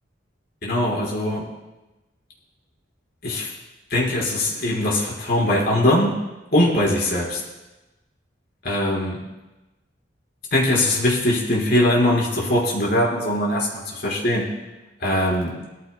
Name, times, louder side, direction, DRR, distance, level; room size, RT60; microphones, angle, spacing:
voice 1, 0.6-1.5 3.2-3.5 3.9-6.1 6.5-7.4 8.6-9.2 10.5-14.4 15.0-15.5, left 1 dB, 55° left, -5 dB, 4.5 m, -21 dB
20.0 x 14.5 x 2.2 m, 1.1 s
head